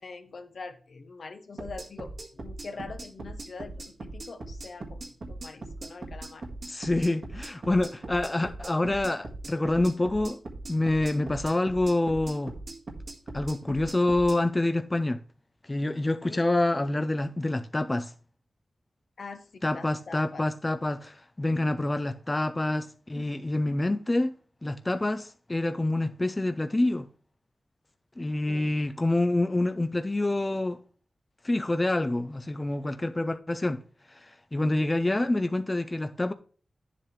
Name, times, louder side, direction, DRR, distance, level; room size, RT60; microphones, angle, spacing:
voice 1, 0.0-6.5 16.2-16.5 19.2-20.4 23.1-23.3 28.5-28.7, left 4 dB, 65° left, 1.0 m, -44 dB
sound 1, 1.6-14.4, right 2 dB, 60° right, 1.6 m, -40 dB
voice 2, 6.7-10.4 10.7-12.5 13.3-15.2 15.6-18.1 19.6-24.3 24.6-27.1 28.2-30.8 31.4-33.8 34.1-36.3, left 2 dB, 25° left, 0.5 m, -27 dB
9.8 x 7.4 x 3.2 m
cardioid pair, 70°, 0 cm